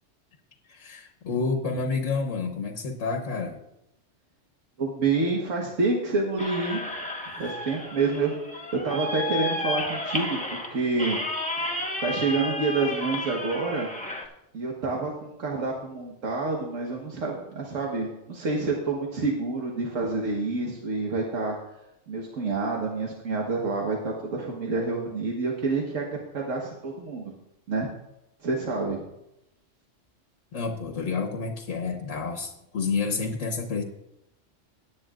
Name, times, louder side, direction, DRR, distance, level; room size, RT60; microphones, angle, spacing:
voice 1, 0.7-3.6 30.5-33.8, left 4 dB, 75° left, 2 dB, 1.4 m, -29 dB
voice 2, 4.8-6.8 7.4-11.2 11.6-13.9 14.5-21.6 22.1-26.1 26.3-27.3 27.7-27.9 28.4-29.0, right 3 dB, 90° right, -1 dB, 1.7 m, -28 dB
sound 1, 6.4-14.3, left 1 dB, 5° left, 1.1 m, -32 dB
18.0 x 9.5 x 2.5 m, 0.87 s
omnidirectional pair, 1.3 m